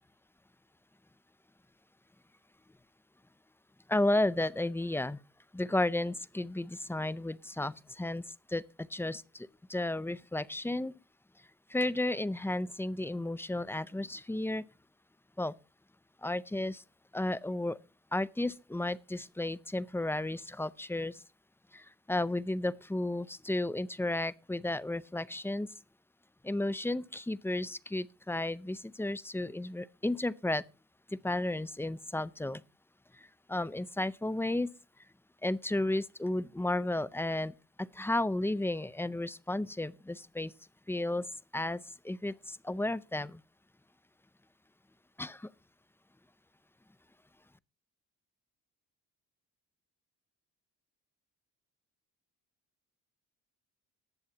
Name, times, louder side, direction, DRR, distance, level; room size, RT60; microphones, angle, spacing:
voice 1, 3.9-5.2 5.5-8.2 8.5-10.9 11.7-14.6 15.4-15.5 16.2-16.8 17.1-17.8 18.1-21.2 21.7-25.7 26.4-30.6 31.2-32.6 33.2-34.7 35.4-40.5 40.9-41.3 41.5-43.4 45.2-45.5, left 1 dB, 5° left, 0.5 m, -33 dB
18.5 x 7.1 x 2.8 m
cardioid pair, 75°, 39 cm